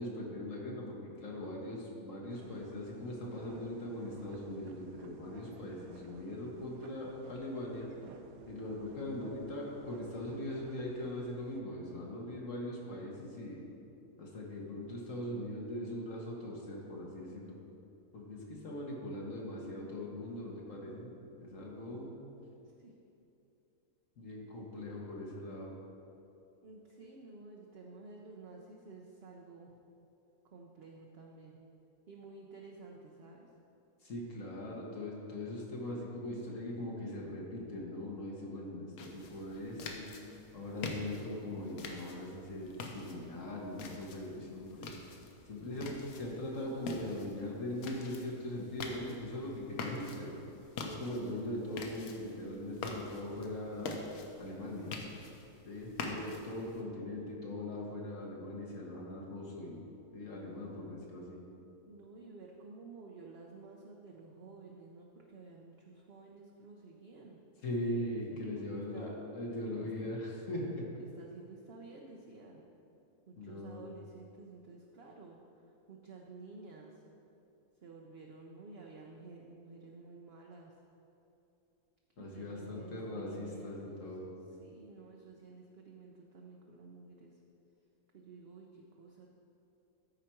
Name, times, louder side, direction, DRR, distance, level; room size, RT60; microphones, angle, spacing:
voice 1, 0.0-7.9 8.5-13.6 14.2-17.6 18.1-21.1 21.4-22.1 24.2-25.7 34.0-40.1 40.5-44.9 45.5-50.3 50.8-53.9 54.4-54.9 55.7-59.8 60.1-61.4 67.6-70.8 73.4-73.8 82.2-84.3, left 1 dB, 60° left, -3 dB, 1.6 m, -40 dB
sound 1, 2.3-11.6, right 6 dB, 75° right, 1.0 m, -58 dB
voice 2, 26.6-29.8 30.4-31.6 32.1-33.5 56.0-56.3 61.9-67.4 68.3-69.2 69.8-70.1 71.0-72.6 73.3-77.0 77.8-80.7 82.2-84.1 84.6-87.4 88.1-89.3, right 3 dB, 55° right, -1 dB, 0.8 m, -52 dB
sound 2, 39.0-56.8, left 3 dB, 75° left, 1.2 m, -46 dB
13.0 x 5.0 x 4.4 m, 2.8 s
omnidirectional pair, 1.6 m